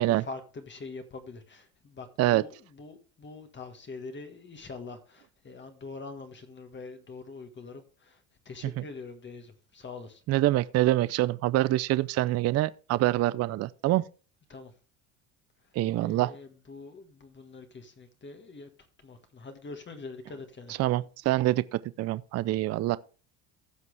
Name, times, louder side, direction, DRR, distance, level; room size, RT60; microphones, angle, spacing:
voice 1, 0.0-10.2 14.5-14.7 15.6-15.7 16.0-18.7 19.0-20.8, left 3 dB, 25° left, 1.7 m, -44 dB
voice 2, 10.3-14.0 15.8-16.3 20.8-23.0, right 16 dB, 40° right, 0.4 m, -25 dB
15.5 x 5.9 x 3.4 m
supercardioid pair, 95°, 40 cm